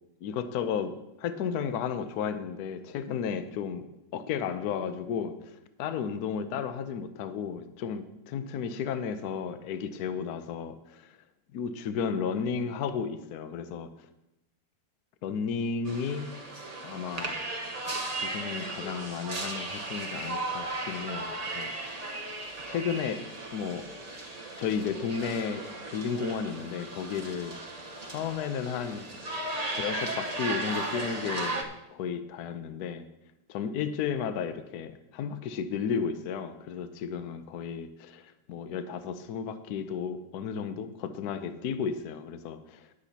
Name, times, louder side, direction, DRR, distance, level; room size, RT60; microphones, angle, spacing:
voice 1, 0.2-0.9 1.2-3.9 4.1-11.1 11.5-13.9 15.2-16.3 16.8-17.4 18.2-21.3 21.5-21.7 22.7-23.3 23.5-23.9 24.6-27.6 28.0-29.0 29.7-33.1 33.5-42.9, left 6 dB, 65° left, 10 dB, 1.1 m, -33 dB
sound 1, 15.9-31.6, right 2 dB, 30° right, 0.8 m, -36 dB
18.5 x 8.1 x 2.9 m, 0.89 s
omnidirectional pair, 2.0 m